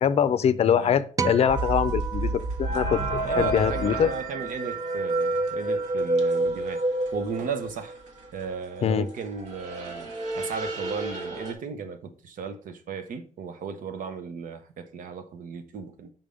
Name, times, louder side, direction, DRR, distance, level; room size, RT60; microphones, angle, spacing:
voice 1, 0.0-2.3 2.6-4.1 8.8-9.1, left 8 dB, 50° left, 0.5 m, -23 dB
sound 1, 1.2-3.7, right 6 dB, 25° right, 0.4 m, -33 dB
sound 2, 1.5-8.1 8.3-9.1 9.4-11.5, right 2 dB, 60° right, 1.2 m, -29 dB
voice 2, 3.2-6.8 7.1-7.9 8.3-10.1 10.3-16.1, right 5 dB, 80° right, 0.9 m, -35 dB
5.4 x 3.5 x 5.2 m
wide cardioid pair, 150°, 14 cm